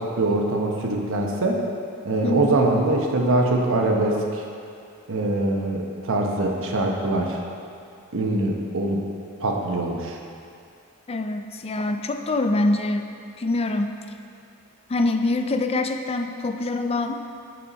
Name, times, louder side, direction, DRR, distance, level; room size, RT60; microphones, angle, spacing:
voice 1, 0.0-1.6 2.0-4.4 5.1-7.4 8.1-9.0 9.4-10.2, right 2 dB, 60° right, 1 dB, 0.9 m, -23 dB
voice 2, 2.2-2.6 11.1-13.1 13.4-14.0 14.9-17.2, left 2 dB, 25° left, 6 dB, 0.4 m, -24 dB
11.0 x 4.4 x 4.1 m, 2.5 s
head